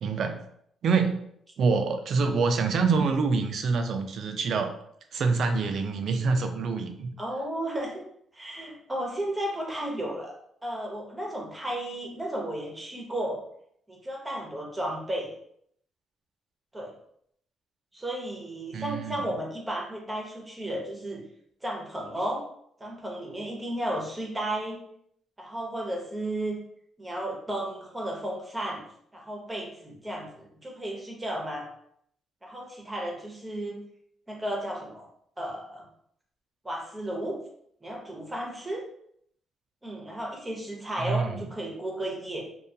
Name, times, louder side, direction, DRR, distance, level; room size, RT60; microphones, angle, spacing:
voice 1, 0.0-0.4 0.8-1.2 1.6-4.7 5.1-7.1 18.7-19.1 41.0-41.3, right 4 dB, 65° right, 6 dB, 0.3 m, -26 dB
voice 2, 7.2-8.0 8.3-10.3 10.6-13.4 13.9-15.3 16.7-16.9 17.9-21.2 21.6-22.4 22.8-24.8 25.4-26.6 27.0-28.8 29.1-31.7 32.4-33.8 34.3-35.1 35.4-35.9 36.6-37.4 37.8-38.9 39.8-42.4, right 1 dB, 15° right, -1 dB, 0.7 m, -33 dB
2.3 x 2.2 x 2.6 m, 0.69 s
cardioid pair, 90°, 0 cm